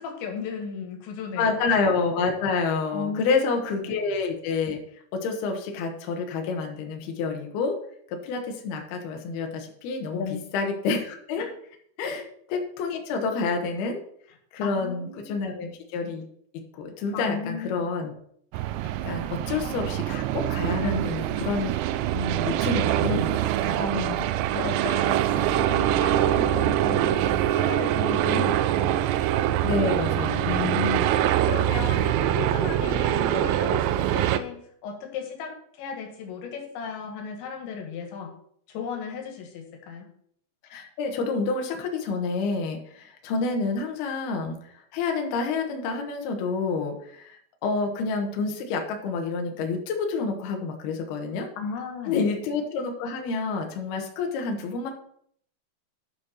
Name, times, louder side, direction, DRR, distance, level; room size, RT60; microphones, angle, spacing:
voice 1, 0.0-1.6 2.9-3.5 3.8-3.9 10.1-10.4 11.4-11.5 12.0-12.2 14.6-15.6 17.1-17.9 20.8-21.2 23.8-28.9 30.5-31.1 31.5-38.3 38.7-40.1 51.6-52.3, left 6 dB, 90° left, 3 dB, 4.0 m, -35 dB
voice 2, 1.4-4.8 5.1-7.8 8.1-10.2 10.5-11.5 12.0-12.2 12.5-14.0 14.5-16.2 16.8-18.1 19.0-21.8 22.1-23.8 29.6-30.8 40.7-44.6 44.9-47.4 47.6-51.5 52.1-54.9, left 4 dB, 70° left, 3 dB, 3.1 m, -28 dB
sound 1, 18.5-34.4, right 12 dB, 90° right, 2.9 m, -24 dB
11.5 x 6.5 x 4.3 m, 0.65 s
omnidirectional pair, 5.0 m